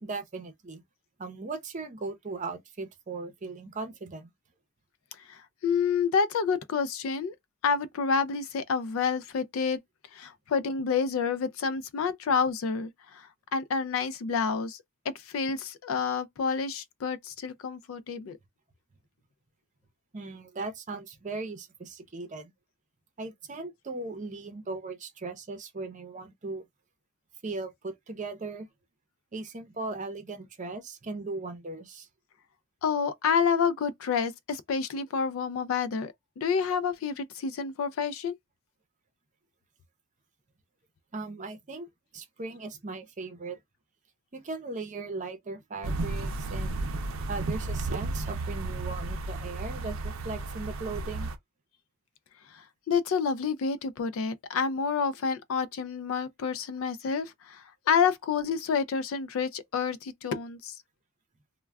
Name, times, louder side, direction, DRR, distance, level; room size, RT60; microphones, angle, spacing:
voice 1, 0.0-0.8 1.2-4.3 20.1-22.5 23.2-26.6 27.4-28.7 29.3-32.1 41.1-41.9 42.1-43.6 44.3-46.8 47.3-51.3, right 3 dB, 40° right, 0.6 m, -38 dB
voice 2, 5.3-7.3 7.6-9.8 10.1-14.8 15.1-18.4 32.8-38.3 52.5-60.8, left 6 dB, 80° left, 0.4 m, -29 dB
sound 1, 45.8-51.4, right 2 dB, 85° right, 0.5 m, -33 dB
2.3 x 2.2 x 3.3 m
head